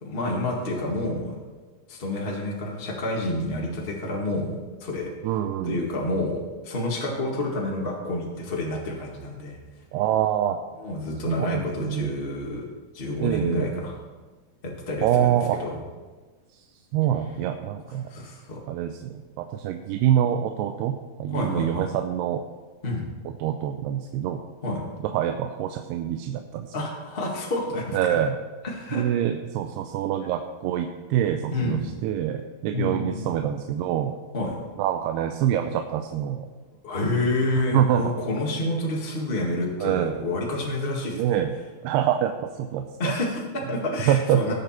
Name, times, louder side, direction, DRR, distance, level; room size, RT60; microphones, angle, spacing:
voice 1, 0.0-1.4 1.9-5.1 5.6-9.6 10.8-12.6 12.9-13.9 14.6-15.3 15.6-15.8 18.1-18.6 21.3-21.8 22.8-23.0 24.6-24.8 26.7-28.0 28.6-29.0 31.5-31.9 32.7-33.1 34.3-34.6 36.8-41.4 43.0-44.5, left 1 dB, 60° left, -2 dB, 0.6 m, -29 dB
voice 2, 5.2-5.8 9.9-10.6 11.3-12.1 13.2-13.7 15.0-15.6 16.5-16.6 16.9-18.1 18.7-22.4 23.3-24.4 25.0-26.8 27.9-28.4 28.9-34.2 34.8-36.5 37.7-38.1 39.8-40.2 41.1-41.5 41.8-43.2 44.1-44.5, right 10 dB, 85° right, 6 dB, 2.6 m, -25 dB
18.5 x 6.9 x 4.4 m, 1.3 s
omnidirectional pair, 4.7 m